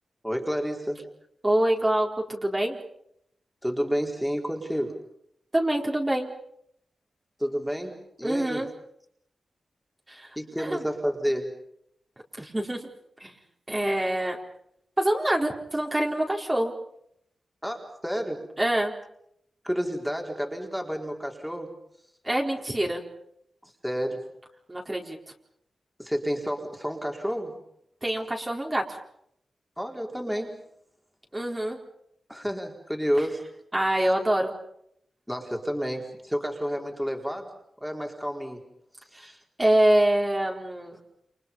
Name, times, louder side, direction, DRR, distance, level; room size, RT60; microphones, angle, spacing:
voice 1, 0.2-1.0 3.6-5.0 7.4-8.6 10.4-11.5 17.6-18.5 19.6-21.7 23.6-24.2 26.0-27.6 29.8-30.6 32.3-33.5 35.3-37.5 37.8-38.6, equal, ahead, 1 dB, 4.4 m, -30 dB
voice 2, 1.4-2.8 5.5-6.3 8.2-8.7 10.1-10.3 10.6-10.8 12.4-12.8 13.2-13.3 13.7-14.4 15.0-16.7 18.6-18.9 22.2-23.0 24.7-25.2 28.0-29.0 31.3-31.8 33.7-34.5 39.1-39.3 39.6-41.0, right 1 dB, 15° right, 0 dB, 4.3 m, -25 dB
29.5 x 29.0 x 5.6 m, 0.72 s
wide cardioid pair, 120°, 0 cm